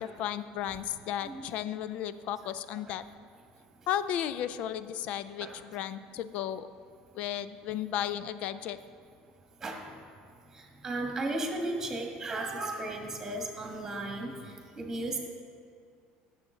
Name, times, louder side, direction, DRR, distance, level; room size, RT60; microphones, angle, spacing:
voice 1, 0.0-3.0 3.9-6.7 7.1-8.8, left 10 dB, 55° left, 14 dB, 0.4 m, -34 dB
voice 2, 1.2-1.6 2.7-2.8 5.4-5.5 9.6-9.8 10.5-15.2, right 2 dB, 15° right, 1 dB, 1.5 m, -35 dB
14.5 x 7.2 x 3.9 m, 2.2 s
cardioid pair, 150°, 3 cm